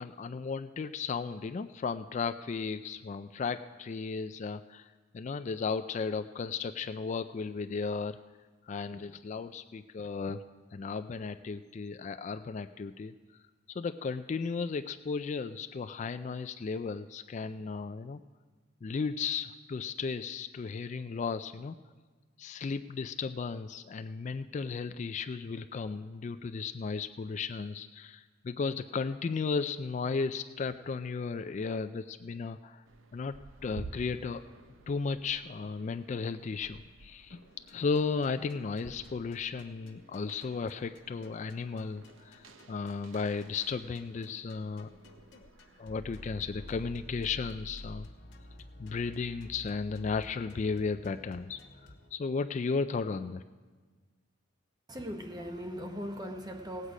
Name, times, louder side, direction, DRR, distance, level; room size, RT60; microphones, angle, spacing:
voice 1, 0.0-4.9 5.1-8.2 8.7-10.4 10.7-13.1 13.7-18.2 18.8-21.8 22.4-32.8 33.1-33.3 33.6-34.4 34.9-37.4 37.7-44.9 45.3-45.5 45.8-48.1 48.8-51.6 52.1-53.4, left 5 dB, 35° left, 10 dB, 0.3 m, -35 dB
sound 1, 32.9-47.0, right 2 dB, 85° right, 0.7 m, -52 dB
sound 2, 37.5-52.1, left 1 dB, 70° left, 1.4 m, -52 dB
voice 2, 54.9-56.9, equal, 20° right, 5 dB, 0.9 m, -39 dB
17.5 x 8.2 x 4.9 m, 1.4 s
head